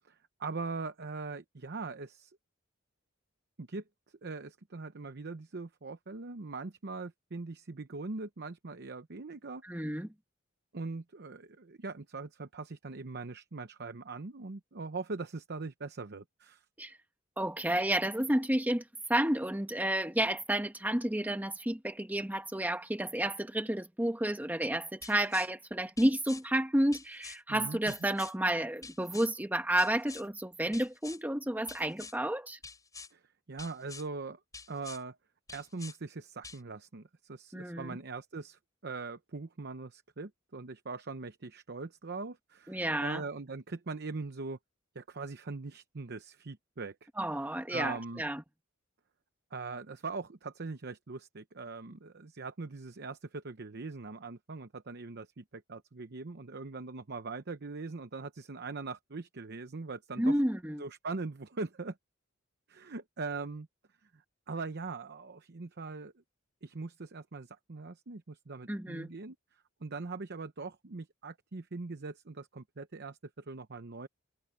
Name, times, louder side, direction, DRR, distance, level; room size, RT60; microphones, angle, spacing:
voice 1, 0.0-2.4 3.6-3.8 4.2-9.6 10.7-16.6 27.5-27.9 33.1-34.4 34.7-35.2 35.5-44.6 44.9-47.1 47.7-48.2 49.5-60.4 60.8-62.0 62.7-63.7 64.0-64.2 64.5-66.1 66.6-74.1, right 3 dB, 55° right, 0.8 m, -41 dB
voice 2, 9.6-10.1 16.8-17.0 17.4-32.6 37.5-38.0 42.7-43.2 47.2-48.4 60.2-60.8 68.7-69.1, right 1 dB, 10° right, 1.2 m, -31 dB
sound 1, 25.0-25.5 26.0-26.4 26.9-27.4 27.9-28.3 28.8-29.3 29.8-30.3 30.7-31.2 31.7-32.2 32.6-33.1 33.6-34.1 34.5-35.0 35.5-36.0 36.4-36.6, left 4 dB, 15° left, 6.1 m, -47 dB
head